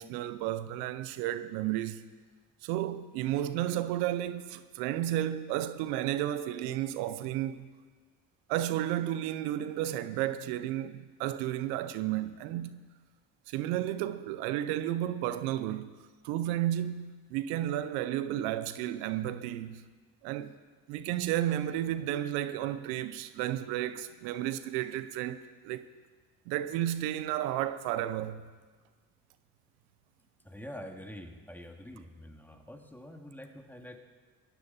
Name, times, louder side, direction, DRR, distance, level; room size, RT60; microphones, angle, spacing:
voice 1, 0.0-2.0 2.6-7.7 8.5-12.8 13.5-15.9 16.2-19.8 20.2-20.5 20.9-25.9 26.5-28.5, right 12 dB, 85° right, 0.7 m, -32 dB
voice 2, 30.4-34.0, left 1 dB, 5° left, 2.2 m, -46 dB
17.5 x 14.5 x 4.2 m
hypercardioid pair, 50°, 38 cm